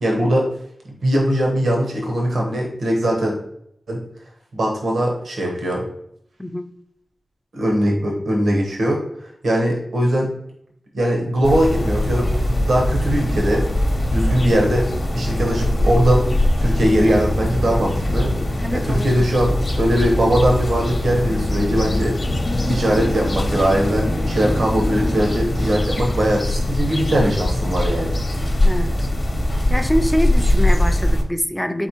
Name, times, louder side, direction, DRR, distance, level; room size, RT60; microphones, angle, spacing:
voice 1, 0.0-0.4 1.0-3.4 3.9-4.0 4.5-5.8 7.5-9.0 9.4-10.3 10.9-12.3 12.7-13.6 14.1-16.3 16.6-18.3 18.7-22.1 22.6-28.2, right 1 dB, 85° right, -1 dB, 1.0 m, -20 dB
voice 2, 6.4-6.7 18.6-19.3 28.6-29.1 29.7-31.9, equal, 5° left, 8 dB, 0.3 m, -24 dB
sound 1, 11.4-31.2, left 1 dB, 40° left, 0.6 m, -21 dB
4.2 x 4.1 x 2.9 m, 0.73 s
wide cardioid pair, 120°, 0 cm